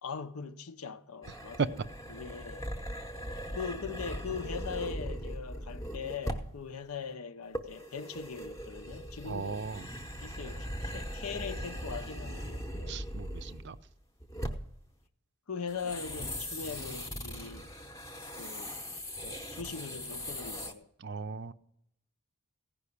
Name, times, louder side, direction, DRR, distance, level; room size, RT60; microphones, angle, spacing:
voice 1, 0.0-1.6 2.1-2.7 3.5-9.7 10.2-13.0 15.5-17.7 18.4-20.9, left 5 dB, 80° left, 0.7 m, -41 dB
sound 1, 1.2-6.6 7.5-13.9 14.2-14.8 15.7-20.7, equal, 15° left, 0.8 m, -40 dB
voice 2, 9.2-9.9 12.9-13.8 21.0-21.5, right 5 dB, 50° right, 0.5 m, -35 dB
16.0 x 5.4 x 8.4 m
head